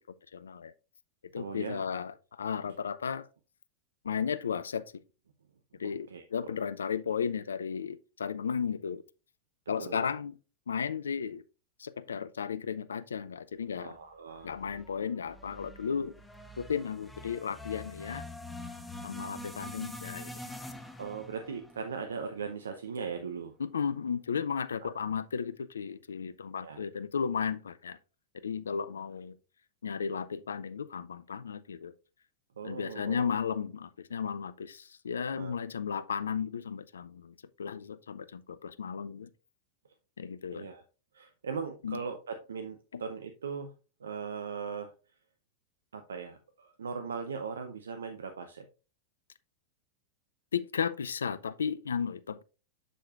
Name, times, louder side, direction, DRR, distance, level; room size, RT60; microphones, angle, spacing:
voice 1, 0.3-0.7 1.3-3.3 4.0-5.0 5.8-9.0 9.7-10.3 10.7-11.4 11.8-14.0 14.4-16.1 16.6-18.2 19.0-20.3 23.6-28.0 28.4-29.4 29.8-31.9 32.6-39.3 40.2-40.7 41.8-42.0 42.9-43.0 50.5-52.4, left 6 dB, 80° left, 0.4 m, -34 dB
voice 2, 1.3-1.8 5.8-6.5 9.8-10.0 13.8-14.5 21.0-23.5 24.8-24.9 26.6-26.8 32.6-33.4 35.3-35.6 40.5-40.8 41.1-43.7 44.0-44.9 45.9-48.7, right 5 dB, 75° right, 0.6 m, -39 dB
sound 1, 14.4-22.8, left 1 dB, 5° left, 1.0 m, -45 dB
7.6 x 6.6 x 2.4 m
figure-of-eight pair, 95°, 0 cm